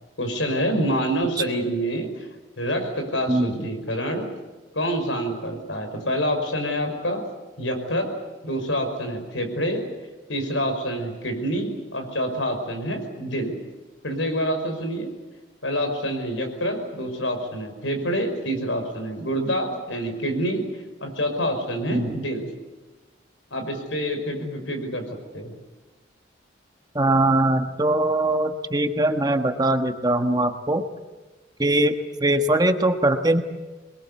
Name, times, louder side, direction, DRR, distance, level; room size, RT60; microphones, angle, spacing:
voice 1, 0.2-2.3 2.6-4.3 4.7-7.2 7.6-8.1 8.4-9.8 10.3-13.5 14.0-15.1 15.6-20.6 21.0-22.5 23.5-25.1 25.3-25.5, equal, 90° left, 5 dB, 5.5 m, -27 dB
voice 2, 3.3-3.6 21.9-22.1 26.9-30.8 31.6-33.4, right 1 dB, 20° right, 7 dB, 1.3 m, -21 dB
26.0 x 21.5 x 8.3 m, 1.2 s
head